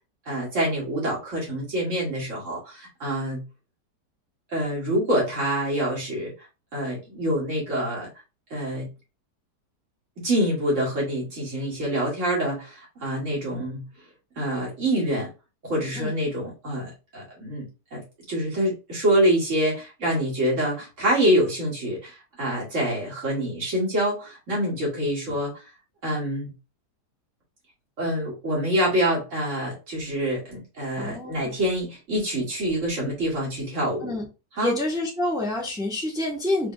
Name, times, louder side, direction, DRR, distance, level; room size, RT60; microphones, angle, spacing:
voice 1, 0.3-3.4 4.5-6.3 6.7-8.1 8.5-8.9 10.2-13.8 14.4-15.3 15.6-18.0 18.3-25.6 26.0-26.5 28.0-34.1 34.6-34.8, right 1 dB, 45° right, -4 dB, 2.1 m, -26 dB
voice 2, 31.0-31.5 34.0-34.3 34.6-36.7, left 2 dB, 5° right, -1 dB, 0.5 m, -27 dB
4.9 x 3.4 x 2.2 m, 0.30 s
omnidirectional pair, 1.8 m